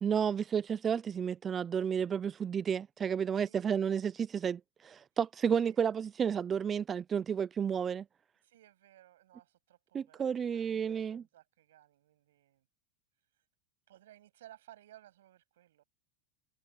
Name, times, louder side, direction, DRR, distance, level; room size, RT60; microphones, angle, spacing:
voice 1, 0.0-8.0 9.9-11.2, right 7 dB, 25° right, 0.5 m, -32 dB
voice 2, 3.3-3.7 5.6-5.8 8.4-12.7 13.9-15.8, right 13 dB, 80° right, 7.7 m, -59 dB
supercardioid pair, 125°, 0 cm